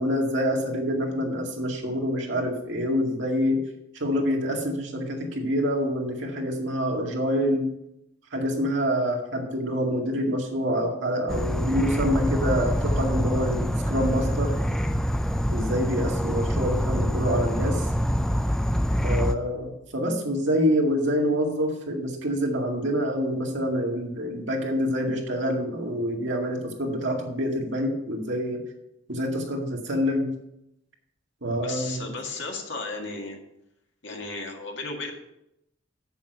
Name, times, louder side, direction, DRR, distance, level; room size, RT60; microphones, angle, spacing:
voice 1, 0.0-3.6 4.0-7.7 8.3-14.5 15.5-17.9 19.0-28.6 29.1-30.3 31.4-32.1, equal, 70° right, 0 dB, 2.0 m, -26 dB
Insect / Frog, 11.3-19.4, equal, 5° left, 0.3 m, -25 dB
voice 2, 31.6-33.4 34.0-35.1, left 3 dB, 70° left, 1 dB, 1.9 m, -34 dB
7.8 x 7.1 x 5.4 m, 0.81 s
head